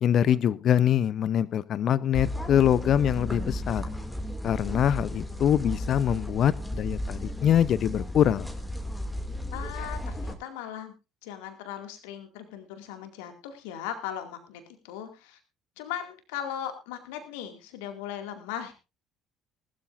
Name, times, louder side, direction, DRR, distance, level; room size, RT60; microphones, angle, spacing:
voice 1, 0.0-3.8 4.4-8.5, left 10 dB, 50° left, 20 dB, 0.7 m, -24 dB
sound 1, 2.1-10.3, left 1 dB, 5° left, 2.5 m, -34 dB
voice 2, 9.5-10.9 11.2-15.4 15.8-18.7, left 9 dB, 65° left, 6 dB, 2.3 m, -38 dB
19.0 x 13.0 x 2.6 m, 0.28 s
figure-of-eight pair, 55°, 0 cm